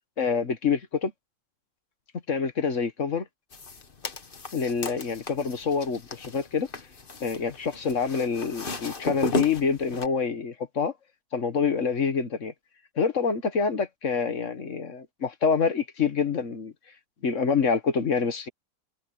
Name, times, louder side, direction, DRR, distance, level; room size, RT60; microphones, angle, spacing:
voice 1, 0.2-1.1 2.3-3.3 4.5-6.7 7.2-10.9 11.3-12.5 13.0-16.7 17.2-18.5, left 5 dB, 55° left, 1.7 m, -26 dB
sound 1, 3.5-10.1, left 3 dB, 35° left, 1.5 m, -35 dB
omnidirectional pair, 1.6 m